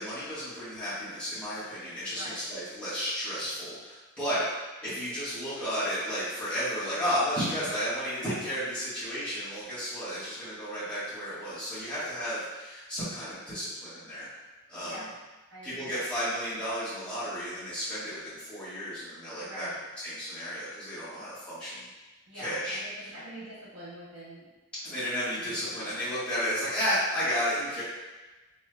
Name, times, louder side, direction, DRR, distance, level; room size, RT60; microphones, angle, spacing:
voice 1, 0.0-4.4 4.8-14.3 14.7-15.0 15.6-19.7 20.0-21.9 22.3-22.8 24.8-27.8, equal, 5° left, -14 dB, 1.4 m, -33 dB
voice 2, 2.1-2.4 4.2-4.5 14.7-15.1 15.5-16.0 19.4-19.8 22.3-24.5 24.9-25.0 25.6-26.1, equal, 85° right, -7 dB, 1.1 m, -44 dB
3.3 x 3.1 x 2.2 m, 1.2 s
head